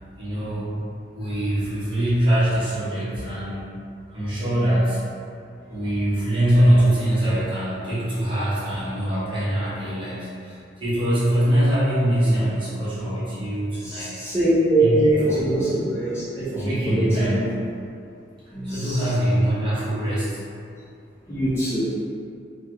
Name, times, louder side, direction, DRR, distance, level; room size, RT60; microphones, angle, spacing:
voice 1, 0.2-0.7 1.1-3.7 4.1-5.0 5.7-14.1 14.8-15.0 15.2-15.5 16.5-17.5 18.6-20.4, right 1 dB, 30° right, -11 dB, 1.0 m, -23 dB
voice 2, 13.8-17.5 18.5-19.1 21.3-21.9, right 1 dB, 15° left, -11 dB, 0.6 m, -23 dB
3.3 x 2.3 x 3.0 m, 2.4 s
head